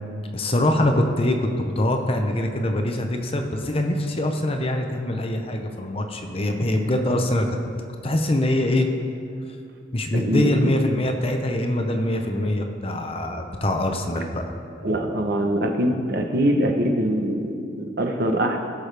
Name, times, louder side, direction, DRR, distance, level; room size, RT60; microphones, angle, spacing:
voice 1, 0.3-7.5 8.0-8.9 9.9-14.4, left 1 dB, 30° left, 4 dB, 0.8 m, -23 dB
voice 2, 10.1-10.7 14.8-18.6, right 1 dB, 55° right, 3 dB, 1.0 m, -23 dB
18.0 x 6.1 x 3.4 m, 2.5 s
head